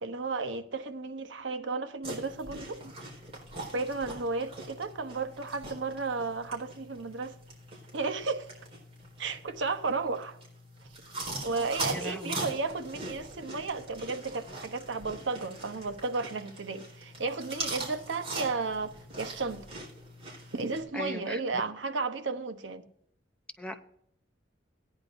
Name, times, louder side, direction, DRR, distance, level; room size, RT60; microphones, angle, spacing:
voice 1, 0.0-2.9 3.7-7.3 7.9-8.5 9.2-10.4 11.4-19.7 20.5-22.9, right 3 dB, 80° right, 0.9 m, -33 dB
sound 1, 2.0-20.8, right 2 dB, 35° right, 4.5 m, -42 dB
voice 2, 11.8-12.4 20.9-21.4 23.6-23.8, left 1 dB, 5° left, 0.7 m, -38 dB
17.0 x 10.0 x 2.6 m
head